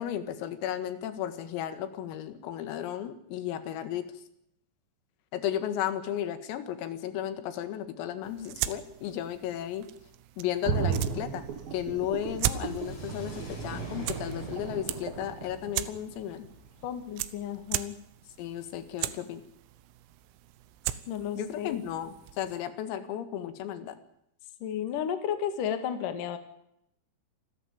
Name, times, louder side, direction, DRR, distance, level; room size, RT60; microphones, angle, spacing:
voice 1, 0.0-4.1 5.3-9.9 10.4-11.4 11.7-16.5 18.4-19.4 21.4-24.0, left 10 dB, 85° left, 11 dB, 4.5 m, -34 dB
sound 1, 8.2-22.6, right 14 dB, 85° right, 3.7 m, -39 dB
sound 2, 10.6-16.5 16.8-16.9, right 7 dB, 55° right, 3.0 m, -35 dB
Car / Accelerating revving vroom, 10.9-17.7, left 1 dB, 35° left, 7.2 m, -46 dB
voice 2, 16.8-18.0 21.1-21.8 24.6-26.4, left 9 dB, 50° left, 9 dB, 2.9 m, -33 dB
27.5 x 13.5 x 9.0 m, 0.76 s
omnidirectional pair, 5.9 m